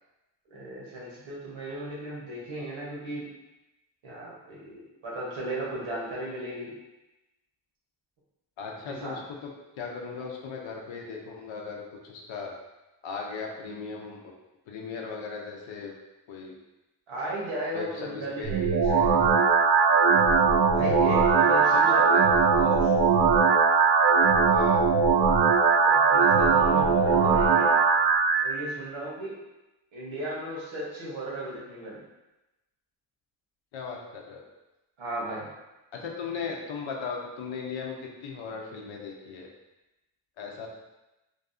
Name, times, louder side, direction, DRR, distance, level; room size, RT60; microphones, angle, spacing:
voice 1, 0.5-3.3 4.0-6.7 9.0-9.2 17.1-19.1 20.7-22.2 22.5-22.9 25.8-27.7 28.4-29.3 29.9-32.0 35.0-35.5, right 1 dB, 85° right, -6 dB, 1.0 m, -35 dB
voice 2, 8.6-9.5 9.8-12.6 13.0-14.2 14.7-15.9 16.3-16.5 17.7-18.5 18.9-19.1 21.7-22.2 24.5-24.8 33.7-34.4 35.9-38.0 38.2-39.5 40.4-40.7, left 5 dB, 75° left, 0 dB, 0.6 m, -37 dB
sound 1, 18.4-28.4, right 5 dB, 60° right, 0.5 m, -20 dB
2.6 x 2.3 x 2.4 m, 1.0 s
cardioid pair, 55°, 46 cm